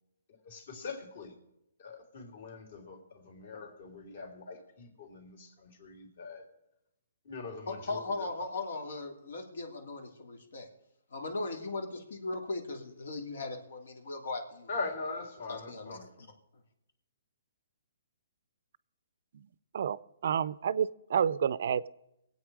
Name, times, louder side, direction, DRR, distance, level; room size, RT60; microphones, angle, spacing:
voice 1, 0.4-1.3 1.8-6.5 7.3-8.3 14.7-16.1, left 3 dB, 50° left, 4 dB, 3.5 m, -42 dB
voice 2, 7.7-10.7 11.1-14.7 15.5-16.3, left 3 dB, 75° left, 3 dB, 2.9 m, -38 dB
voice 3, 20.2-21.9, right 8 dB, 55° right, 18 dB, 0.5 m, -29 dB
22.5 x 8.5 x 4.8 m, 0.85 s
hypercardioid pair, 165°, 0 cm